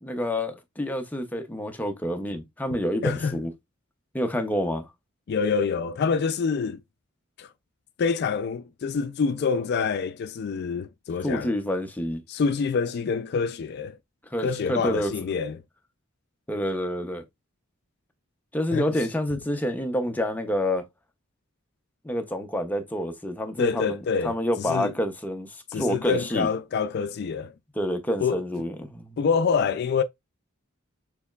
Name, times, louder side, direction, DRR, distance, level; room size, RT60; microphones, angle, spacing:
voice 1, 0.0-3.5 4.1-4.9 11.2-12.2 14.3-15.1 16.5-17.2 18.5-20.8 22.0-26.5 27.8-29.2, equal, 10° left, 0.6 m, -28 dB
voice 2, 3.0-3.4 5.3-6.8 7.4-7.5 8.0-11.5 12.3-14.0 14.4-15.6 18.7-18.9 23.6-24.9 25.7-27.5 28.2-28.4 29.2-30.0, left 5 dB, 50° left, 0.3 m, -26 dB
6.7 x 2.9 x 2.3 m
head